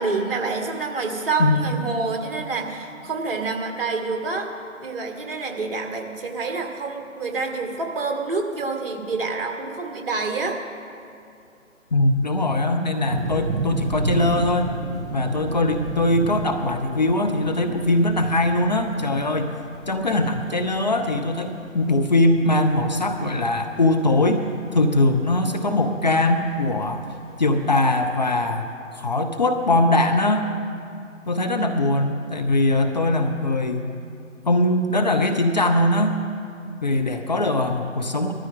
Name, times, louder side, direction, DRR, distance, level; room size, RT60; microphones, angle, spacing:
voice 1, 0.0-4.5 4.8-10.6, right 4 dB, 45° right, 3 dB, 1.7 m, -27 dB
voice 2, 11.9-14.7 15.1-19.5 19.9-24.5 24.7-27.0 27.4-28.7 28.9-30.5 31.3-33.9 34.5-36.2 36.8-38.3, left 2 dB, 35° left, 5 dB, 0.6 m, -21 dB
sound 1, 13.1-28.2, right 3 dB, 65° right, 2.2 m, -34 dB
19.0 x 13.5 x 3.7 m, 2.5 s
figure-of-eight pair, 145°, 39 cm